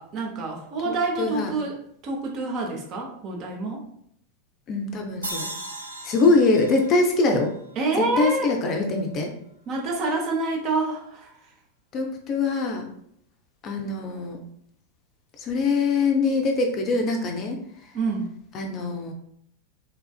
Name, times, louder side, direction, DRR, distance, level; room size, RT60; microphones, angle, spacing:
voice 1, 0.0-3.8 7.8-8.5 9.7-11.3 17.9-18.3, right 3 dB, 35° right, 0 dB, 0.7 m, -27 dB
voice 2, 1.2-1.5 4.7-5.5 6.0-7.5 8.0-9.3 11.9-12.8 13.6-14.4 15.4-17.6 18.5-19.1, left 3 dB, 35° left, 3 dB, 0.5 m, -23 dB
sound 1, 5.2-8.5, right 2 dB, 80° right, 0.5 m, -38 dB
3.4 x 2.4 x 2.3 m, 0.69 s
figure-of-eight pair, 90°, 0 cm